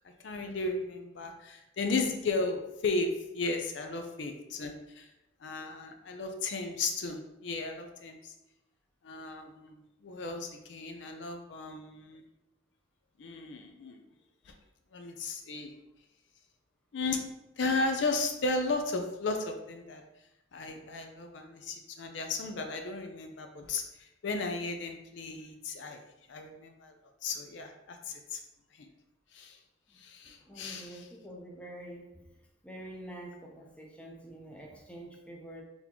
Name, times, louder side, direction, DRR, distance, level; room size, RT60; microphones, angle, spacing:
voice 1, 0.2-5.1 5.4-8.3 9.0-12.2 13.2-14.1 14.5-14.6 14.9-15.7 16.9-17.2 17.6-20.0 20.5-26.0 26.3-26.9 27.2-28.4 28.8-28.9 29.3-29.6 30.0-31.0, left 3 dB, 70° left, 5 dB, 0.5 m, -35 dB
voice 2, 30.4-32.2 32.6-35.6, right 1 dB, 5° left, -1 dB, 0.6 m, -46 dB
4.0 x 3.5 x 3.0 m, 0.92 s
head